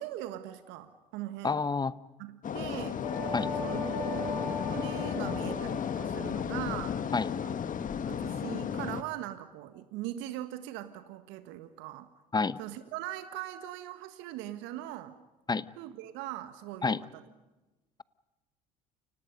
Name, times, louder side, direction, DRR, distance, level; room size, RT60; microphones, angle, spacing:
voice 1, 0.0-1.6 2.2-3.0 3.6-7.0 7.4-7.6 8.0-12.1 12.6-15.2 15.8-17.2, right 13 dB, 70° right, 10 dB, 1.6 m, -41 dB
voice 2, 1.4-1.9 3.3-3.5 7.1-7.3 12.3-12.6 15.5-15.6 16.8-17.0, left 4 dB, 20° left, 17 dB, 1.0 m, -28 dB
sound 1, 2.4-9.0, left 7 dB, 40° left, 1.6 m, -34 dB
sound 2, 3.0-6.7, left 2 dB, 90° left, 7.7 m, -38 dB
29.5 x 26.0 x 5.3 m, 1.1 s
hypercardioid pair, 65°, 20 cm